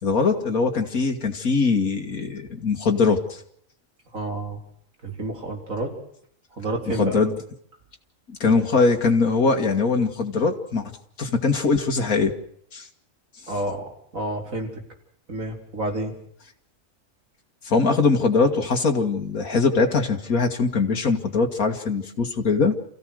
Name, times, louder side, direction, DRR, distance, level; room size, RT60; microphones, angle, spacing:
voice 1, 0.0-3.4 6.9-7.4 8.3-10.9 11.2-12.3 12.7-12.9 17.6-22.8, left 4 dB, 85° left, 3 dB, 2.5 m, -22 dB
voice 2, 4.1-4.6 5.0-5.9 6.6-7.2 8.5-8.6 13.5-14.8 15.3-16.1, right 2 dB, 70° right, 2 dB, 4.5 m, -30 dB
28.5 x 16.0 x 6.4 m, 0.68 s
omnidirectional pair, 1.5 m